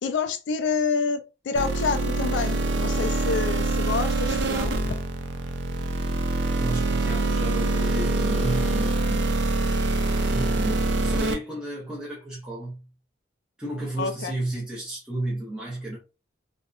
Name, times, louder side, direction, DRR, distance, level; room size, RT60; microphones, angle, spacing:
voice 1, 0.0-5.0 14.0-14.3, left 5 dB, 65° left, 0.3 m, -28 dB
sound 1, 1.6-11.3, right 2 dB, 60° right, 0.4 m, -25 dB
voice 2, 6.6-9.4 10.2-12.9 13.6-16.0, right 1 dB, 5° right, 0.7 m, -33 dB
2.7 x 2.1 x 2.3 m
head